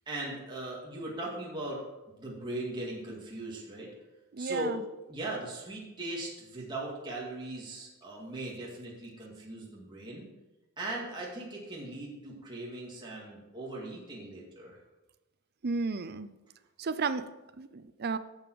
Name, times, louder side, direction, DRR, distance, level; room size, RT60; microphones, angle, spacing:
voice 1, 0.1-1.8 2.1-3.9 4.4-4.8 5.1-10.2 10.8-14.8, right 2 dB, 20° right, -5 dB, 2.3 m, -39 dB
voice 2, 4.3-4.8 15.6-16.3 16.8-17.3 17.6-18.2, right 4 dB, 45° right, 12 dB, 0.5 m, -33 dB
11.0 x 7.0 x 4.7 m, 1.0 s
head